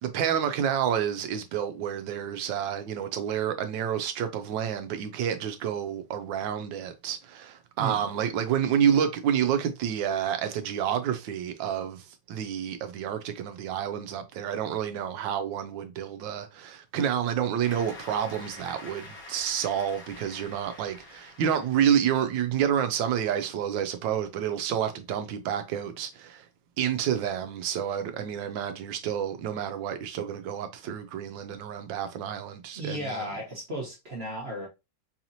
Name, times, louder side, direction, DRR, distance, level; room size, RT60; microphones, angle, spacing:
voice 1, 0.0-26.4 26.8-33.3, right 9 dB, 75° right, 1.2 m, -29 dB
voice 2, 7.8-8.1 32.8-34.7, right 1 dB, 45° right, 0.9 m, -34 dB
Cheering / Applause, 17.6-22.5, left 2 dB, 70° left, 2.1 m, -47 dB
4.8 x 2.8 x 2.6 m
omnidirectional pair, 2.3 m